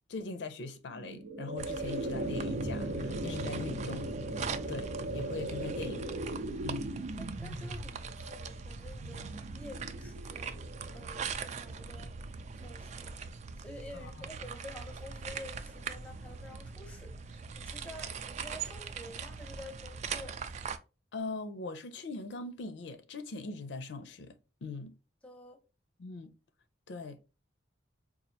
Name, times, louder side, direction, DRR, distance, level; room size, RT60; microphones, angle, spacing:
voice 1, 0.1-4.4 4.7-6.1 6.6-6.9 14.0-14.3 21.1-24.3 24.6-24.9 26.0-26.3 26.9-27.2, left 3 dB, 70° left, 0.4 m, -41 dB
sound 1, 0.9-12.0, right 1 dB, 85° right, 0.7 m, -38 dB
sound 2, 1.6-20.8, right 5 dB, 40° right, 0.3 m, -42 dB
voice 2, 7.2-10.6 10.9-12.1 12.5-13.1 13.6-20.4 25.2-25.6, left 1 dB, 5° left, 0.7 m, -49 dB
4.1 x 2.4 x 2.7 m
head